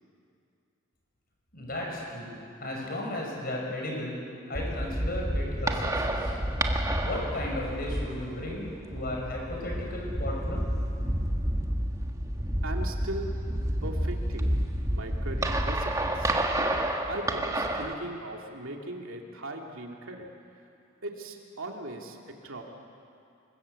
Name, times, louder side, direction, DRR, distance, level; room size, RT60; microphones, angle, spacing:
voice 1, 1.5-4.2 4.5-6.4 7.0-10.6, left 1 dB, 45° left, -1 dB, 6.8 m, -35 dB
sound 1, 4.5-17.9, right 1 dB, 15° right, 1.5 m, -30 dB
voice 2, 12.6-13.3 13.8-14.6 14.9-16.3 17.1-20.3 21.0-22.2 22.4-22.6, right 1 dB, 75° right, 1 dB, 2.7 m, -38 dB
26.0 x 22.0 x 8.4 m, 2.5 s
head